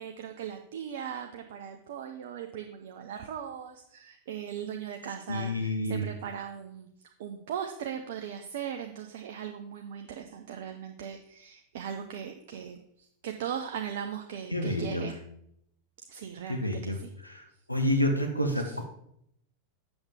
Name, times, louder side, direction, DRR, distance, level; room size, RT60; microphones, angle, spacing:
voice 1, 0.0-6.9 7.2-15.1 16.1-17.1 18.5-18.8, right 8 dB, 55° right, 5 dB, 0.6 m, -39 dB
voice 2, 5.3-6.1 14.5-15.1 16.5-17.0 17.3-17.4 17.7-18.8, left 1 dB, 85° left, 5 dB, 0.8 m, -28 dB
8.0 x 7.1 x 3.5 m, 0.72 s
figure-of-eight pair, 90°, 0 cm